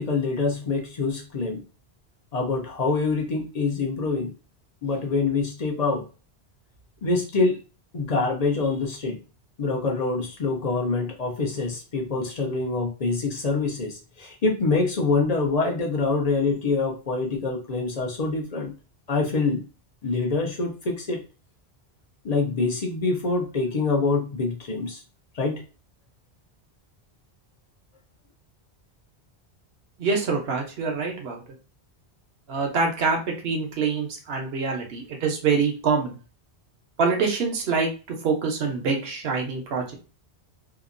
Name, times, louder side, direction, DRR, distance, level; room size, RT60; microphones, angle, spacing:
voice 1, 0.0-1.6 2.3-4.3 4.8-6.0 7.0-7.6 7.9-9.2 9.6-18.7 19.1-19.6 20.0-21.2 22.2-25.0 25.3-25.6, left 3 dB, 45° left, 1 dB, 0.6 m, -25 dB
voice 2, 30.0-31.4 32.5-36.2 37.0-40.0, right 4 dB, 70° right, 2 dB, 0.9 m, -25 dB
2.8 x 2.3 x 2.5 m, 0.35 s
omnidirectional pair, 1.1 m